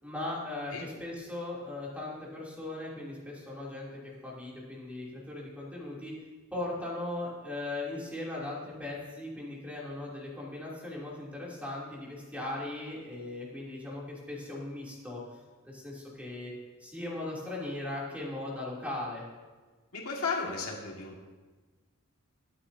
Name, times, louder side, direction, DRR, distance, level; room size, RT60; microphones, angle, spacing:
voice 1, 0.0-6.1 6.5-15.2 15.6-16.5 16.8-19.2, left 2 dB, 5° right, -5 dB, 2.9 m, -38 dB
voice 2, 19.9-21.3, left 4 dB, 70° left, -1 dB, 1.9 m, -34 dB
22.5 x 8.4 x 2.7 m, 1.3 s
head